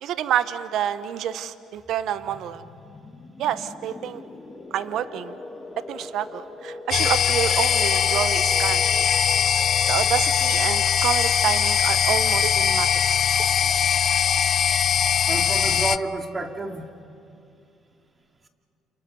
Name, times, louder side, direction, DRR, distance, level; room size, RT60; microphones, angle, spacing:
voice 1, 0.0-2.6 3.4-4.2 4.7-5.4 5.9-8.8 9.9-12.9, right 10 dB, 70° right, 13 dB, 0.8 m, -28 dB
sound 1, 1.8-12.3, left 2 dB, 20° left, 3.0 m, -41 dB
sound 2, 6.9-16.0, left 8 dB, 55° left, 0.6 m, -21 dB
voice 2, 15.3-16.9, right 2 dB, 30° right, 4 dB, 2.5 m, -30 dB
29.5 x 28.0 x 5.4 m, 2.5 s
supercardioid pair, 75°, 0 cm